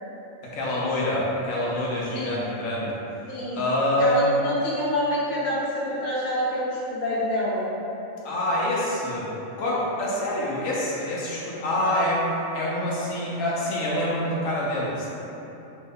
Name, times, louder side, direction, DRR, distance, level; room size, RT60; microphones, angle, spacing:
voice 1, 0.4-3.0 3.5-4.3 8.2-9.3 9.5-12.2 12.5-15.1, left 1 dB, 75° left, -6 dB, 1.1 m, -26 dB
voice 2, 2.1-2.4 3.3-3.6 4.0-7.7 11.8-11.9, equal, 40° left, -8 dB, 0.7 m, -27 dB
3.0 x 2.1 x 3.5 m, 3.0 s
omnidirectional pair, 1.4 m